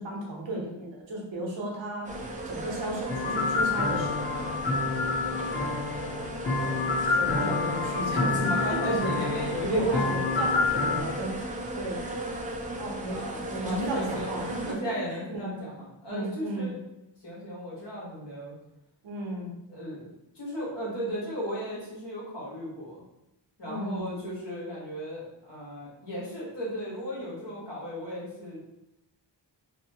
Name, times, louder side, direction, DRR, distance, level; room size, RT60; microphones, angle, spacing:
voice 1, 0.0-2.1 2.4-4.1 7.1-9.1 9.6-11.3 11.7-12.0 12.8-14.9 15.3-15.5 16.1-16.7 19.0-19.5 23.6-24.0, right 1 dB, 85° right, -2 dB, 0.8 m, -33 dB
sound 1, 2.0-14.7, right 1 dB, 20° right, 0.3 m, -36 dB
sound 2, 3.1-11.0, left 4 dB, 25° left, 0.7 m, -28 dB
voice 2, 8.5-10.1 13.1-16.7 17.2-18.5 19.7-20.1 20.3-23.0 23.6-28.6, equal, 70° left, -6 dB, 1.2 m, -36 dB
2.7 x 2.1 x 2.7 m, 0.88 s
wide cardioid pair, 75°, 44 cm